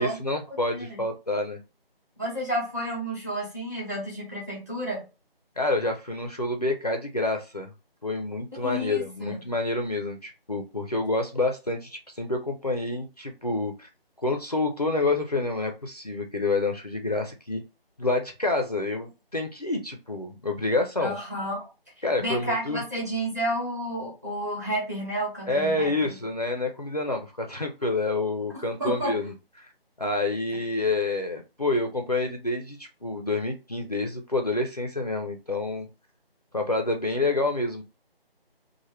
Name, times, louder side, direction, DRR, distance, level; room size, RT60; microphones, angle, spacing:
voice 1, 0.0-1.6 5.6-7.7 8.0-13.9 14.2-17.6 18.0-21.2 22.0-22.8 25.5-29.7 30.0-35.9 36.5-37.8, left 2 dB, 40° left, 4 dB, 0.4 m, -28 dB
voice 2, 0.7-1.1 2.2-5.1 8.5-9.4 21.0-21.7 22.2-26.2 28.8-29.2, right 1 dB, 20° right, -3 dB, 0.9 m, -31 dB
3.1 x 2.1 x 3.1 m, 0.29 s
figure-of-eight pair, 170°, 30 cm